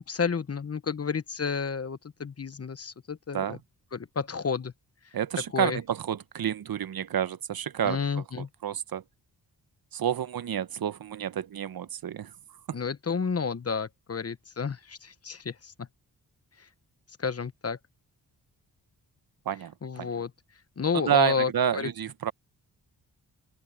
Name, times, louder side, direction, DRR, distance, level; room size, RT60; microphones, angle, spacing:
voice 1, 0.1-3.6 3.9-4.7 5.5-5.8 7.8-8.5 12.7-15.9 16.6-16.7 17.2-17.8 19.8-20.3 20.8-21.9, left 5 dB, 40° left, 1.1 m, -31 dB
voice 2, 5.1-9.0 9.9-12.3 12.7-12.8 19.5-20.1 20.9-22.3, right 9 dB, 65° right, 1.0 m, -29 dB
open air
cardioid pair, 70°, 39 cm